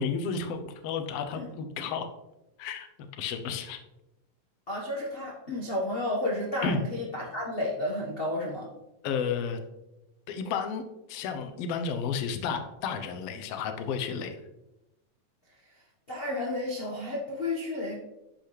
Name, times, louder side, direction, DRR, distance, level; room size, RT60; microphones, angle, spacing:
voice 1, 0.0-2.1 2.6-2.9 3.2-3.8 6.6-6.8 9.0-9.6 10.3-10.8 11.1-14.4, left 6 dB, 65° left, 7 dB, 1.8 m, -32 dB
voice 2, 4.7-8.7 16.1-18.0, left 1 dB, 35° left, -3 dB, 0.9 m, -32 dB
11.5 x 8.3 x 3.4 m, 0.95 s
omnidirectional pair, 3.4 m